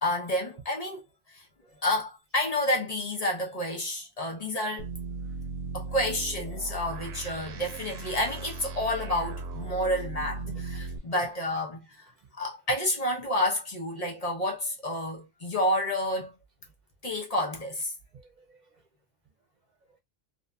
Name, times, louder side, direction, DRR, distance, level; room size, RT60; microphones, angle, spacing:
voice 1, 0.0-1.5 1.8-4.9 5.7-12.0 12.3-16.3 17.0-17.9, left 1 dB, 40° left, 0.8 m, -30 dB
sound 1, 4.8-11.0, right 3 dB, 85° right, 0.8 m, -37 dB
voice 2, 10.4-10.9 12.1-12.3 18.1-18.8 19.6-19.7, right 5 dB, 50° right, 0.7 m, -53 dB
2.7 x 2.5 x 2.2 m
omnidirectional pair, 1.0 m